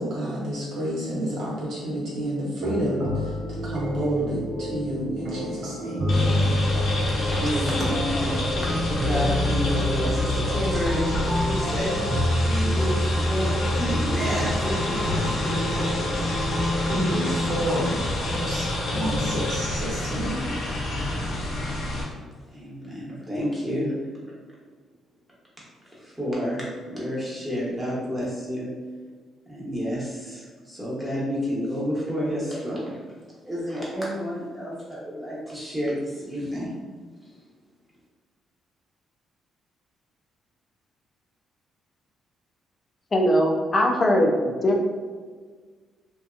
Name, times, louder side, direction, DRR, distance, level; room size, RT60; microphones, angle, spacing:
voice 1, 0.0-6.5 16.9-20.4, equal, 75° right, -5 dB, 1.0 m, -29 dB
sound 1, 2.6-17.3, left 1 dB, 55° right, 0.6 m, -28 dB
sound 2, 6.1-22.0, left 1 dB, 70° left, 0.7 m, -27 dB
voice 2, 7.1-16.1 22.5-23.9 25.9-28.7 29.5-33.0 33.4-36.7 37.2-37.3, equal, 10° right, -7 dB, 1.0 m, -30 dB
voice 3, 43.1-44.3 44.6-44.9, equal, 30° left, 1 dB, 0.4 m, -20 dB
2.7 x 2.2 x 2.4 m, 1.5 s
cardioid pair, 90°, 0 cm